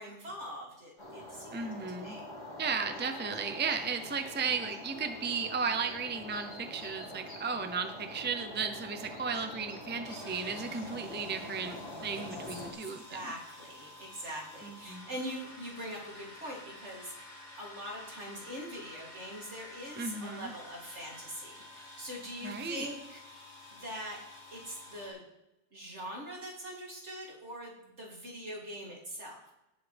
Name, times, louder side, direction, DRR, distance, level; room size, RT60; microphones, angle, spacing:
voice 1, 0.0-2.3 12.2-12.3 12.8-17.3 17.6-23.2 23.7-24.2 24.5-25.2 25.7-29.5, equal, 70° right, -3 dB, 3.5 m, -43 dB
sound 1, 1.0-12.7, left 1 dB, 35° left, 2.4 m, -45 dB
voice 2, 1.5-2.2 2.6-13.2 14.6-15.1 20.0-20.5 22.4-22.9, right 5 dB, 10° right, 7 dB, 0.7 m, -35 dB
sound 2, 10.0-25.1, left 2 dB, 30° right, 4.9 m, -51 dB
18.0 x 7.6 x 3.5 m, 0.92 s
omnidirectional pair, 1.2 m